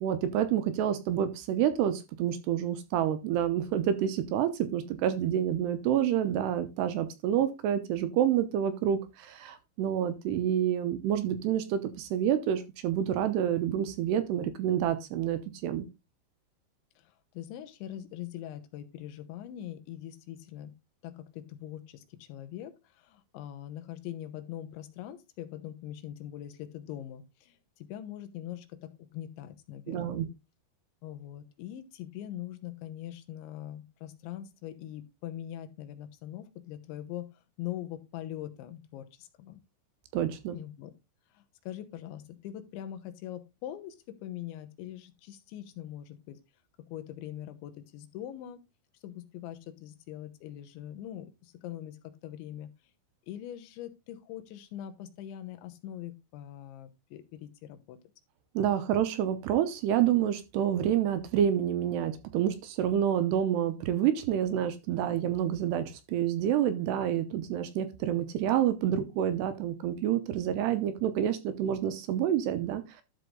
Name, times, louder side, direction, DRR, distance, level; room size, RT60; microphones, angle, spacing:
voice 1, 0.0-15.9 29.9-30.3 40.1-40.6 58.6-73.0, right 10 dB, 75° right, 2.8 m, -28 dB
voice 2, 17.0-20.7 21.0-30.2 31.0-37.3 37.6-39.6 40.5-40.9 41.3-46.4 46.9-48.6 49.0-52.0 52.2-52.7 53.3-58.0 68.8-68.9, left 12 dB, 80° left, 3.4 m, -42 dB
12.5 x 4.7 x 3.9 m
omnidirectional pair, 5.2 m